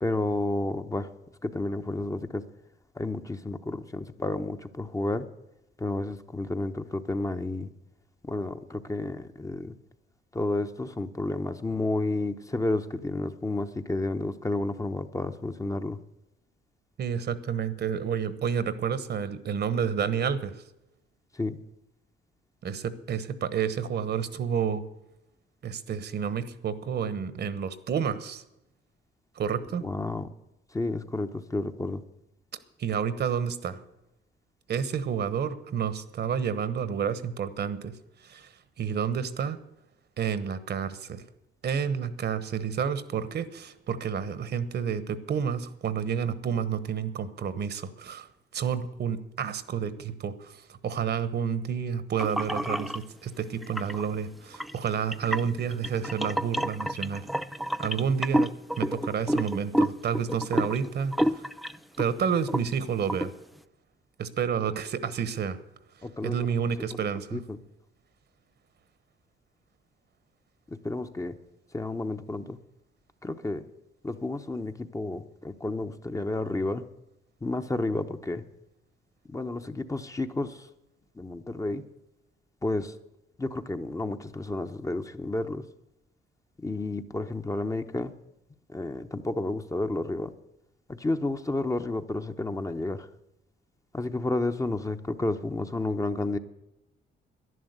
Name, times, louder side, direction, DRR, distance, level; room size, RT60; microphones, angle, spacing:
voice 1, 0.0-1.1 1.4-2.4 2.9-5.2 5.8-7.7 8.2-9.7 10.3-16.0 21.3-21.6 29.8-30.3 30.7-32.0 66.0-66.5 67.3-67.6 70.7-71.3 71.7-72.6 73.2-73.6 74.0-76.8 77.4-78.4 79.3-80.7 81.2-81.8 82.6-83.0 83.4-85.6 86.6-88.1 88.7-90.3 90.9-93.1 93.9-96.4, left 2 dB, 15° left, 8 dB, 0.8 m, -31 dB
voice 2, 17.0-20.5 22.6-24.8 25.6-28.4 29.4-29.8 32.8-33.8 34.7-37.9 38.2-38.5 38.8-39.6 40.2-41.2 41.6-57.2 57.8-58.5 58.8-61.4 62.0-63.3 64.2-65.6 66.2-67.4, right 7 dB, 55° right, 14 dB, 1.1 m, -30 dB
sound 1, 52.2-53.0 53.6-54.1 54.5-62.1 62.4-62.7 63.1-63.3, equal, ahead, 0.5 m, -29 dB
11.0 x 10.5 x 8.0 m, 0.90 s
cardioid pair, 90°, 20 cm